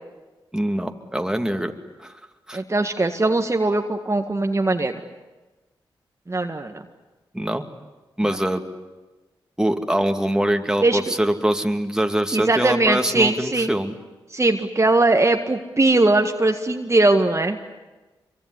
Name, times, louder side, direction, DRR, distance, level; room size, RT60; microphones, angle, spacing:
voice 1, 0.5-1.7 2.0-2.1 2.5-2.6 7.3-7.6 8.2-8.6 9.6-13.9, right 1 dB, 5° right, 5 dB, 2.5 m, -23 dB
voice 2, 2.5-5.0 6.3-6.8 10.8-11.0 12.3-13.7 14.3-17.6, right 2 dB, 30° right, 5 dB, 1.8 m, -20 dB
25.0 x 23.0 x 9.9 m, 1.2 s
cardioid pair, 45°, 9 cm